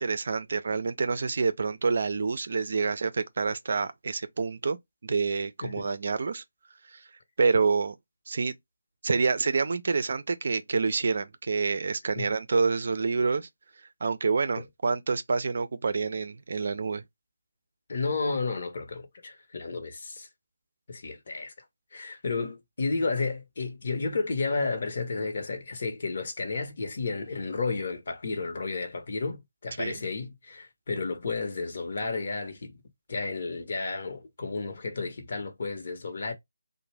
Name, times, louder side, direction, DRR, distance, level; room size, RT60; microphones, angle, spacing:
voice 1, 0.0-6.4 6.9-7.0 7.4-7.9 8.3-8.5 9.0-13.5 14.0-17.0 29.8-30.0, right 4 dB, 55° right, 0.4 m, -27 dB
voice 2, 17.9-20.3 20.9-21.5 21.9-32.8 33.1-36.3, left 4 dB, 50° left, 0.9 m, -32 dB
2.5 x 2.1 x 3.2 m
figure-of-eight pair, 155°, 0 cm